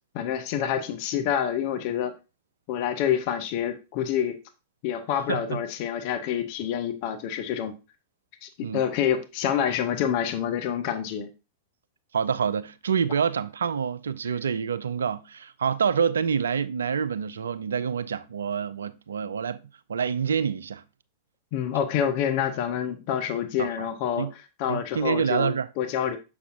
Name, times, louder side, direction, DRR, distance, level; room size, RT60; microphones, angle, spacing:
voice 1, 0.1-2.1 2.7-4.4 4.8-7.8 8.4-11.3 21.5-24.3 24.6-26.2, left 9 dB, 45° left, 0.7 m, -27 dB
voice 2, 5.3-5.6 8.6-8.8 12.1-19.6 19.9-20.8 23.6-23.9 24.2-24.3 24.7-25.7, right 7 dB, 65° right, 0.4 m, -27 dB
6.7 x 5.9 x 2.5 m
figure-of-eight pair, 95°, 0 cm